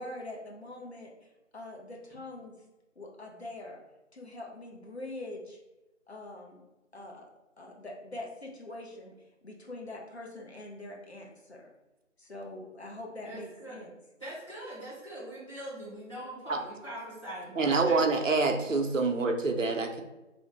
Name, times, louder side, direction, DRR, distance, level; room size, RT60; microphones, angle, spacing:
voice 1, 0.0-2.5 3.0-3.8 4.1-5.6 6.1-6.6 6.9-7.3 7.6-11.7 12.2-13.9, left 2 dB, 55° left, -1 dB, 0.8 m, -43 dB
voice 2, 13.2-13.8 14.2-18.0, right 1 dB, 25° left, -11 dB, 1.2 m, -42 dB
voice 3, 17.5-20.0, right 3 dB, 75° right, 4 dB, 0.6 m, -26 dB
3.1 x 2.1 x 4.0 m, 1.0 s
figure-of-eight pair, 170°, 39 cm